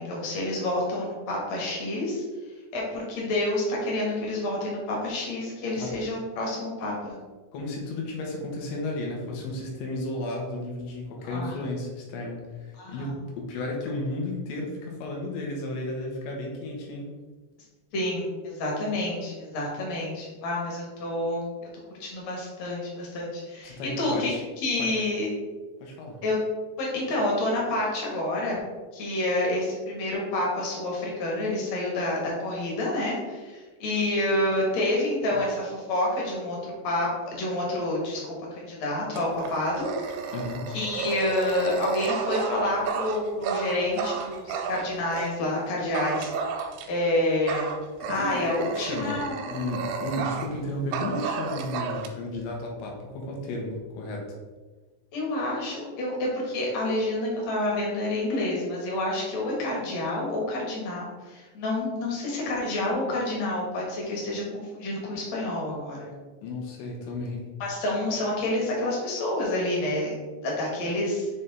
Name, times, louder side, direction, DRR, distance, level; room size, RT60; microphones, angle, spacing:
voice 1, 0.0-2.2 2.7-7.2 11.3-11.6 12.8-13.1 17.9-21.5 22.0-25.3 26.2-26.4 26.8-28.6 28.9-39.9 40.7-46.3 46.9-47.7 48.1-49.4 55.1-66.1 67.6-70.2 70.4-71.3, left 1 dB, 60° left, -3 dB, 1.9 m, -28 dB
voice 2, 7.5-17.1 23.6-24.4 24.8-24.9 25.8-26.2 35.3-35.4 40.3-40.6 48.1-54.3 66.4-67.5, left 2 dB, 80° left, 0 dB, 3.3 m, -33 dB
Dog, 39.1-45.3 45.9-47.1 47.5-50.6 50.9-52.1, right 6 dB, 85° right, 2.7 m, -33 dB
7.3 x 3.3 x 4.0 m, 1.3 s
omnidirectional pair, 5.0 m